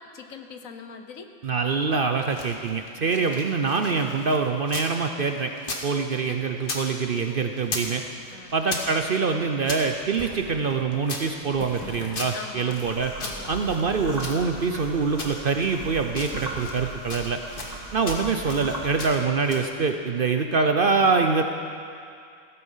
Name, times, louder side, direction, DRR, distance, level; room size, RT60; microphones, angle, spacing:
voice 1, 0.1-1.3 6.1-6.6 7.3-7.5 8.3-8.6 12.3-12.8 13.2-13.6, left 5 dB, 85° left, 6 dB, 1.4 m, -42 dB
voice 2, 1.4-5.5 5.8-8.0 8.5-13.1 13.5-17.4 17.9-21.4, right 4 dB, 50° right, 5 dB, 0.8 m, -24 dB
sound 1, 2.1-4.9 5.2-6.9 7.1-8.0 8.2-9.9 10.4-12.9 13.2-14.8 15.2-15.8 16.1-16.8 17.1-17.8 18.0-18.7 19.0-19.7, left 2 dB, 40° left, 1.6 m, -37 dB
sound 2, 6.5-15.6, equal, 10° left, 2.2 m, -48 dB
sound 3, 12.7-19.1, right 1 dB, 30° right, 1.8 m, -38 dB
15.5 x 14.0 x 5.6 m, 2.4 s
omnidirectional pair, 1.4 m